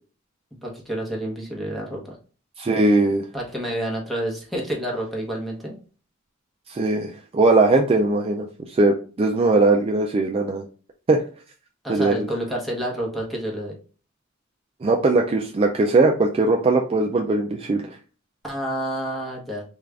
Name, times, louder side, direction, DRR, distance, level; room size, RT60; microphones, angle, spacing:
voice 1, 0.6-2.2 3.3-5.7 11.8-13.7 18.4-19.6, right 1 dB, ahead, -2 dB, 0.9 m, -29 dB
voice 2, 2.6-3.2 6.7-10.6 11.1-11.2 11.9-12.3 14.8-17.9, right 2 dB, 30° right, 1 dB, 0.3 m, -20 dB
3.6 x 2.4 x 3.3 m, 0.38 s
head